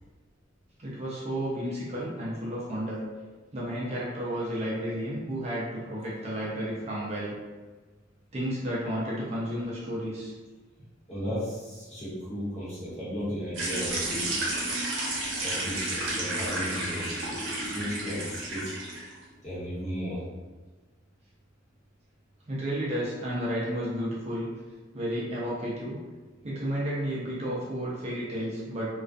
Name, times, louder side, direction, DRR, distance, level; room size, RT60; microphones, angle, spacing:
voice 1, 0.8-3.0 3.5-7.3 8.3-10.3 22.5-24.5 24.9-26.0 26.4-28.9, equal, 35° right, -6 dB, 0.4 m, -32 dB
voice 2, 11.1-14.4 15.4-18.8 19.4-20.3, equal, 35° left, -9 dB, 0.9 m, -35 dB
sound 1, 13.5-19.1, right 1 dB, 65° right, 0.7 m, -31 dB
2.3 x 2.2 x 2.4 m, 1.3 s
head